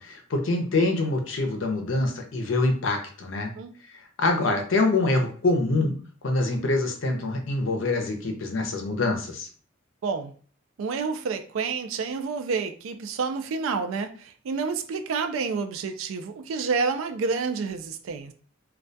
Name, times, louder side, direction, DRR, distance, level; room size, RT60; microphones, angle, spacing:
voice 1, 0.0-3.5 4.2-5.9 6.2-9.5, left 2 dB, 70° left, 0.6 m, -25 dB
voice 2, 10.0-10.3 10.8-18.3, right 5 dB, 80° right, 0.3 m, -29 dB
2.3 x 2.2 x 2.6 m
head